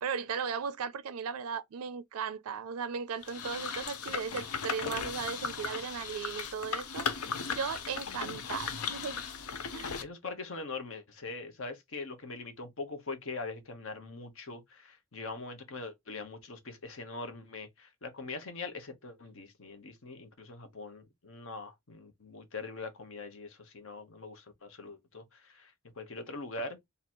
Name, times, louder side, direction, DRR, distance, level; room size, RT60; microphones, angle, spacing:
voice 1, 0.0-7.1 7.5-9.2 9.7-10.0, right 6 dB, 80° right, 0.4 m, -37 dB
sound 1, 3.2-10.0, left 6 dB, 85° left, 0.7 m, -37 dB
voice 2, 10.0-26.8, left 3 dB, 60° left, 1.0 m, -42 dB
3.0 x 2.7 x 4.3 m
head